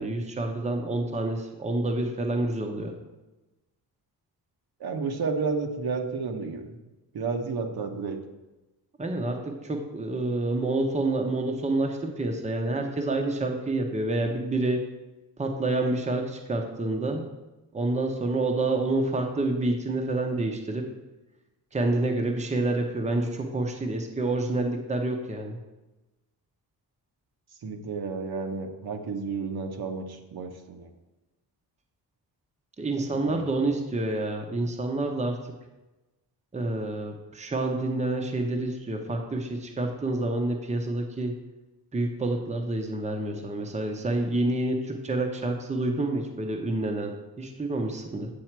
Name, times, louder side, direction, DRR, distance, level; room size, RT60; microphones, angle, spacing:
voice 1, 0.0-2.9 9.0-14.8 15.4-17.2 17.7-20.8 21.7-25.6 32.8-35.4 36.5-41.4 41.9-47.1 47.4-48.3, right 2 dB, 15° right, 3 dB, 0.8 m, -28 dB
voice 2, 4.8-6.8 7.1-8.2 27.6-30.9 33.1-33.4, right 4 dB, 65° right, 4 dB, 1.1 m, -31 dB
8.8 x 7.0 x 4.5 m, 1.1 s
wide cardioid pair, 165°, 40 cm